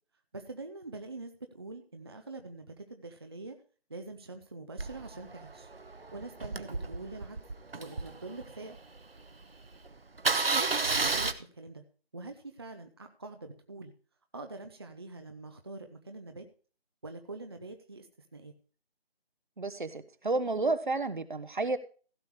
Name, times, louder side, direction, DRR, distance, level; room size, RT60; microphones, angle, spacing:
voice 1, 0.3-3.6 3.9-5.7 6.1-7.4 7.8-8.8 10.5-11.8 12.1-13.9 14.3-16.4 17.0-18.5, right 2 dB, 25° right, 6 dB, 0.8 m, -44 dB
Engine starting, 4.8-9.0 9.4-9.5 9.7-9.9 10.2-11.3, right 3 dB, 65° right, 1.3 m, -31 dB
voice 2, 19.6-21.8, right 3 dB, 50° right, 12 dB, 1.1 m, -31 dB
16.0 x 6.9 x 4.7 m, 0.39 s
figure-of-eight pair, 155°, 31 cm